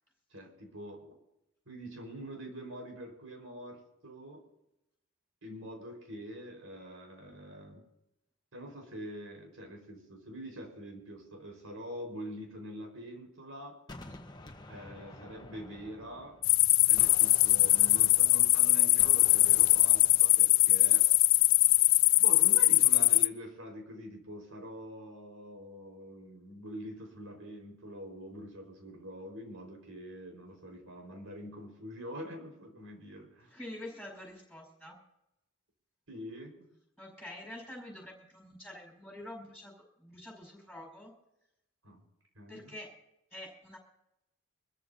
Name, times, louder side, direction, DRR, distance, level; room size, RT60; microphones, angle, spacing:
voice 1, 0.3-1.2 1.7-4.4 5.4-7.8 8.5-13.8 14.7-16.4 16.8-21.1 22.2-33.5 36.1-36.7 41.8-42.0 42.3-42.7, equal, 80° right, 3 dB, 4.9 m, -45 dB
Gunshot gunfire, 13.9-16.6 17.0-20.5, left 1 dB, 20° left, 1.2 m, -50 dB
sound 1, 16.4-23.3, left 18 dB, 75° left, 0.5 m, -22 dB
voice 2, 33.5-35.0 37.0-39.7 40.0-41.1 42.5-42.9 43.3-43.8, left 1 dB, ahead, -3 dB, 5.2 m, -46 dB
25.5 x 14.0 x 2.8 m, 0.86 s
head